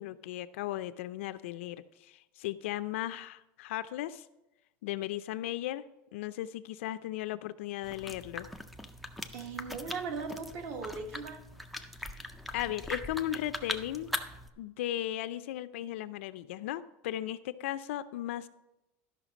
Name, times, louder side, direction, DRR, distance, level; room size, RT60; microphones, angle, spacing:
voice 1, 0.0-4.2 4.8-5.8 6.1-8.5 12.5-14.1 14.6-18.5, left 13 dB, 85° left, 13 dB, 0.5 m, -36 dB
sound 1, 7.8-14.5, left 1 dB, ahead, 0.4 m, -41 dB
voice 2, 9.3-11.4, right 4 dB, 40° right, 6 dB, 1.1 m, -38 dB
12.0 x 5.8 x 5.0 m, 0.94 s
supercardioid pair, 175°, 7 cm